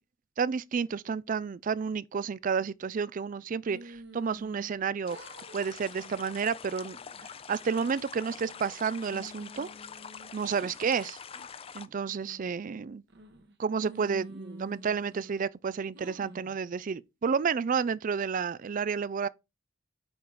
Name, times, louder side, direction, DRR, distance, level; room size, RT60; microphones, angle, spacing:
voice 1, 0.4-5.2 5.5-7.0 7.5-9.7 10.3-11.2 11.7-13.0 13.6-19.3, right 6 dB, 40° right, 0.4 m, -31 dB
sound 1, 3.7-4.8 5.1-5.6 6.0-6.4 6.8-7.4 7.9-8.7 9.1-10.8 11.3-11.5 12.0-12.5 13.1-13.5 13.9-15.4 15.9-16.5, right 1 dB, 60° right, 1.4 m, -49 dB
Ambiance Brook Calm Stereo, 5.1-11.9, left 6 dB, 30° left, 0.5 m, -46 dB
8.8 x 4.0 x 4.8 m
head